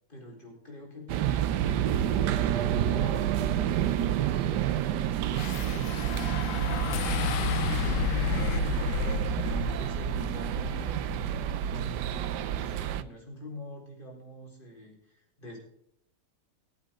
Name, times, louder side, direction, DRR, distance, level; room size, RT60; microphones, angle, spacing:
voice 1, 0.1-5.3 5.7-9.4 9.8-15.6, equal, 25° left, -1 dB, 4.4 m, -45 dB
sound 1, 1.1-13.0, right 11 dB, 70° right, 1.2 m, -29 dB
sound 2, 5.3-11.7, left 11 dB, 80° left, 1.5 m, -33 dB
21.0 x 8.4 x 3.7 m, 0.74 s
omnidirectional pair, 2.1 m